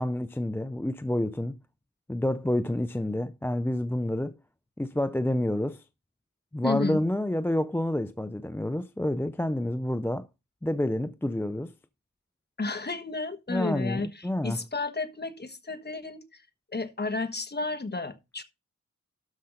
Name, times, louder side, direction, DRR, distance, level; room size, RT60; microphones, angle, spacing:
voice 1, 0.0-1.6 2.1-4.4 4.8-5.8 6.5-10.3 10.6-11.7 13.5-14.6, left 1 dB, 5° left, 0.4 m, -28 dB
voice 2, 6.6-7.0 12.6-16.4 16.7-18.4, left 3 dB, 30° left, 1.3 m, -32 dB
12.5 x 5.5 x 3.8 m
wide cardioid pair, 85°, 32 cm